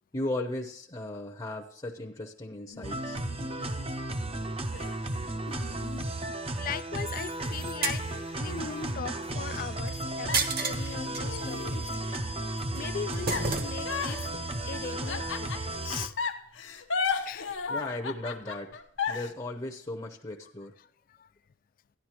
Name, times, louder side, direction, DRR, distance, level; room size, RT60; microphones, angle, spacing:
voice 1, 0.1-3.2 17.7-18.8 19.1-20.7, left 1 dB, 25° left, 2 dB, 0.7 m, -36 dB
Female Creepy Goofy Kira Laugh, 2.7-4.0 4.7-6.9 7.4-7.5 7.9-9.9 10.3-12.3 13.3-15.8 16.2-19.3, left 5 dB, 75° left, 0.9 m, -36 dB
sound 1, 2.8-16.1, right 1 dB, 30° right, 0.6 m, -34 dB
voice 2, 6.6-8.0 8.3-11.6 12.7-14.3 14.7-16.1 17.0-17.9 21.1-21.3, left 8 dB, 45° left, 15 dB, 0.3 m, -39 dB
sound 2, 6.8-8.0 9.5-9.9 10.3-11.2 11.6-12.2 12.6-14.0 14.3-14.5, right 4 dB, 50° right, 1.1 m, -33 dB
13.0 x 10.5 x 3.0 m, 0.67 s
head